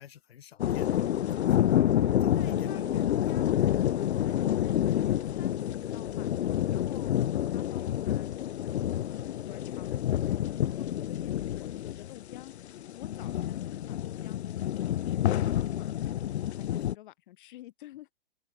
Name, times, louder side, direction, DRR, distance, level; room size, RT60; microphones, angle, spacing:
voice 1, 0.0-1.7 2.2-3.0 7.3-7.4 11.2-11.3 13.3-13.5 16.7-16.9, left 10 dB, 70° left, 2.3 m, -49 dB
sound 1, 0.6-16.9, left 11 dB, 85° left, 0.5 m, -28 dB
sound 2, 1.9-6.7, right 19 dB, 30° right, 3.6 m, -50 dB
voice 2, 2.3-6.3 6.7-7.2 7.5-8.4 8.7-12.5 12.9-16.0 16.5-18.1, left 15 dB, 50° left, 7.1 m, -50 dB
open air
hypercardioid pair, 140°, 32 cm